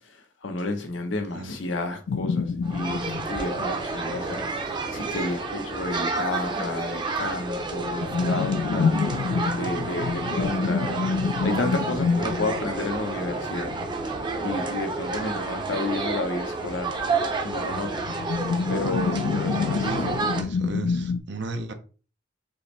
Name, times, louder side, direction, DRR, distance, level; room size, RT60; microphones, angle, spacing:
voice 1, 0.4-9.0 9.5-10.9 11.4-13.7 14.4-16.9 17.4-18.1 18.7-20.3, left 2 dB, 85° left, 0.9 m, -31 dB
sound 1, 2.1-6.1 6.3-6.4 6.7-21.2, left 5 dB, 70° left, 0.3 m, -29 dB
sound 2, 2.6-20.4, right 3 dB, 25° right, 0.7 m, -30 dB
voice 2, 19.1-21.7, right 3 dB, 65° right, 0.6 m, -36 dB
4.8 x 3.0 x 3.2 m
head